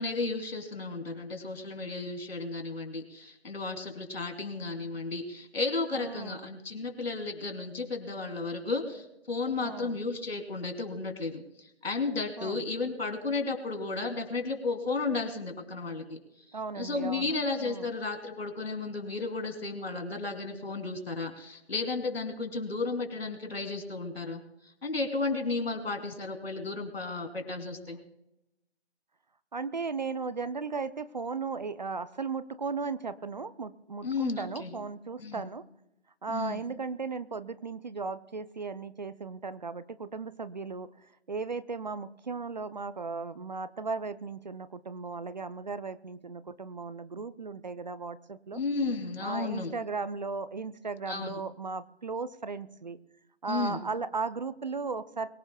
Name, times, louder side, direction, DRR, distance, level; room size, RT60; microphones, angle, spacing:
voice 1, 0.0-11.4 11.8-16.2 16.7-24.4 24.8-28.0 34.0-34.7 35.2-35.4 36.3-36.6 48.5-49.7 51.1-51.4 53.5-53.8, left 3 dB, 60° left, 5 dB, 3.2 m, -33 dB
voice 2, 5.9-6.5 9.6-10.0 12.4-12.6 16.5-17.3 17.6-17.9 29.5-35.6 36.2-40.9 41.3-48.6 49.2-53.0 53.4-55.3, right 4 dB, 40° right, 14 dB, 0.6 m, -36 dB
23.0 x 16.5 x 2.3 m, 0.86 s
figure-of-eight pair, 150°, 34 cm